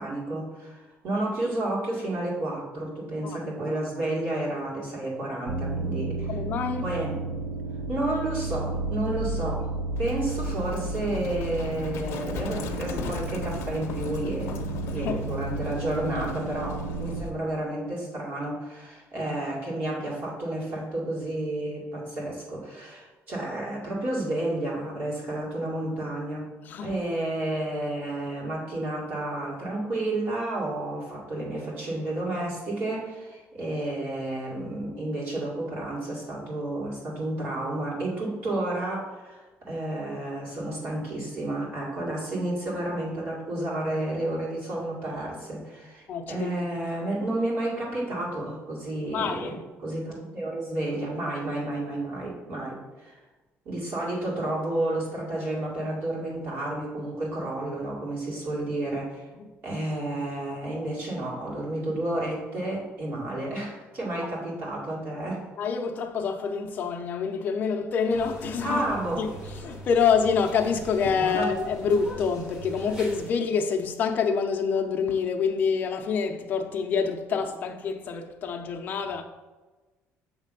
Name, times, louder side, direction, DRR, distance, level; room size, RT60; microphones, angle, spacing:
voice 1, 0.0-6.4 6.8-7.1 7.9-9.7 10.0-26.5 26.8-49.5 49.8-53.2 53.7-59.2 59.6-65.5 68.6-69.2 71.2-71.5 77.3-77.4, right 1 dB, 45° right, 2.1 m, -31 dB
sound 1, 5.5-17.2, right 3 dB, 60° right, 0.7 m, -32 dB
voice 2, 6.3-6.8 14.9-15.2 19.2-19.3 26.6-27.0 46.1-46.6 49.1-49.6 59.3-59.4 65.6-68.8 69.2-69.3 69.6-79.2, left 6 dB, 35° left, 0.6 m, -27 dB
Livestock farm animals working animals, 10.0-17.3, left 6 dB, 70° left, 0.8 m, -39 dB
sound 2, 68.1-73.3, right 1 dB, 15° right, 1.2 m, -42 dB
7.4 x 3.3 x 5.3 m
cardioid pair, 180°, 5 cm